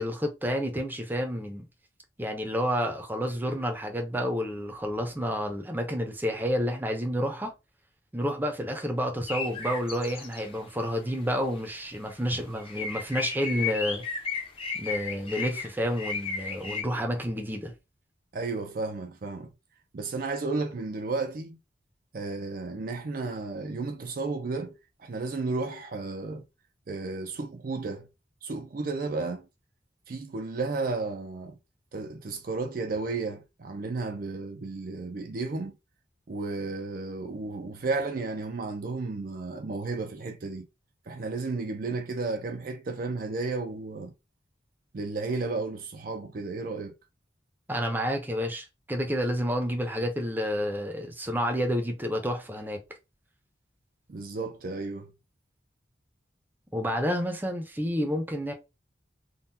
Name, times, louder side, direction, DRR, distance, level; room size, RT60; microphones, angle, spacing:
voice 1, 0.0-1.7 2.2-7.5 8.1-14.0 14.7-17.7 47.7-52.8 56.7-58.5, equal, 10° right, 0.6 m, -30 dB
sound 1, 9.3-10.8 11.1-11.2 11.6-11.8 12.1-16.8, left 5 dB, 30° left, 0.7 m, -34 dB
voice 2, 18.3-19.5 19.9-21.6 22.1-26.4 26.9-28.1 28.4-29.5 30.1-31.6 31.9-35.8 36.3-40.7 41.1-44.1 44.9-46.9 54.1-55.1, right 3 dB, 50° right, 0.5 m, -33 dB
3.7 x 2.3 x 2.7 m
head